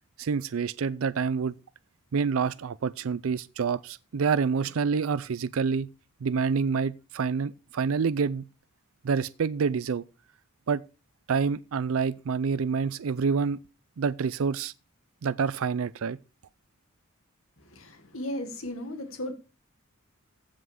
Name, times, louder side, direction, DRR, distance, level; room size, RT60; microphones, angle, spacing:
voice 1, 0.2-1.5 2.1-5.9 6.2-8.4 9.0-10.0 10.7-10.8 11.3-13.6 14.0-14.7 15.2-16.2, right 5 dB, 75° right, 0.4 m, -27 dB
voice 2, 17.7-19.3, left 1 dB, 70° left, 1.8 m, -35 dB
15.5 x 5.9 x 4.8 m
head